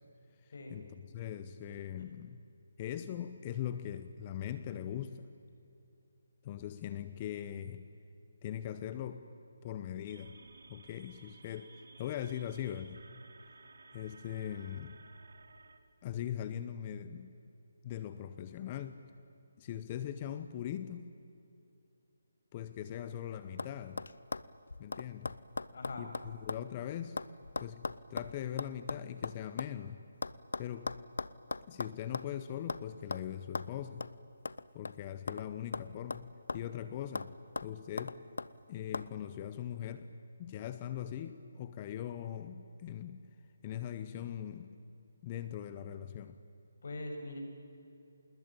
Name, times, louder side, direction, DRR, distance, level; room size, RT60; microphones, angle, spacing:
voice 1, 0.4-2.4 2.8-5.3 6.4-7.9 8.4-9.2 9.6-10.4 10.7-13.0 13.9-15.0 16.0-17.4 17.8-19.0 19.6-21.1 22.5-24.0 24.8-25.3 26.0-27.2 27.6-30.0 30.6-30.9 31.7-34.1 34.7-36.3 36.5-37.3 37.6-38.2 38.7-40.1 40.4-43.2 43.6-44.7 45.2-46.4, left 10 dB, 25° left, 11 dB, 0.8 m, -41 dB
sound 1, 10.1-15.8, right 3 dB, 70° right, 2.4 m, -57 dB
sound 2, 22.8-23.2 23.6-23.7 24.0-26.7 26.9-29.7 30.2-32.3 32.7-32.8 33.1-33.2 33.5-33.7 34.0-34.1 34.4-35.5 35.7-36.8 37.1-37.3 37.6-38.5 38.9-39.1, left 3 dB, 80° left, 0.9 m, -39 dB
voice 2, 25.7-26.1 46.8-47.4, left 2 dB, 55° left, 3 dB, 6.8 m, -42 dB
27.0 x 20.5 x 9.1 m, 2.8 s
hypercardioid pair, 165°, 0 cm